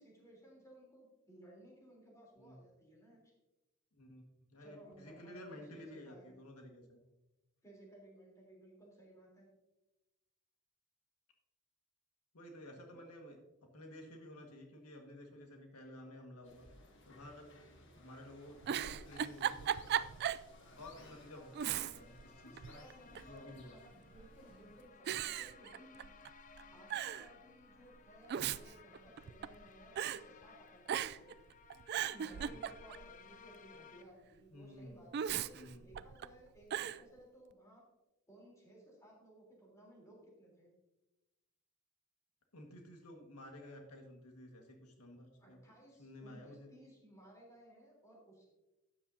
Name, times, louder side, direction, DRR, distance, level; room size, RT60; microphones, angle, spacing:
voice 1, 0.0-3.3 4.6-6.4 7.6-9.5 12.9-13.1 17.8-18.0 22.4-26.1 26.7-31.3 32.1-37.8 38.3-40.7 45.4-48.4, right 1 dB, 15° left, -2 dB, 3.4 m, -59 dB
voice 2, 3.9-4.2 4.5-7.0 12.3-13.4 13.7-16.7 17.0-17.5 18.0-20.1 20.7-23.8 32.4-32.6 34.5-35.1 35.5-35.9 42.5-45.6 46.0-46.7, left 1 dB, 85° left, 2 dB, 1.7 m, -53 dB
sound 1, 16.4-24.8, left 2 dB, 55° left, 1.7 m, -60 dB
Giggle, 18.5-20.5 20.9-21.0 21.5-22.2 22.6-23.4 24.1-24.5 25.1-26.3 26.6-26.7 26.9-27.3 28.1-29.6 30.0-30.2 30.9-31.3 31.7-33.1 35.1-36.3 36.7-37.0, right 9 dB, 45° right, 0.3 m, -37 dB
sound 2, 20.7-34.0, left 6 dB, 35° left, 0.5 m, -60 dB
12.5 x 9.3 x 2.7 m, 1.0 s
head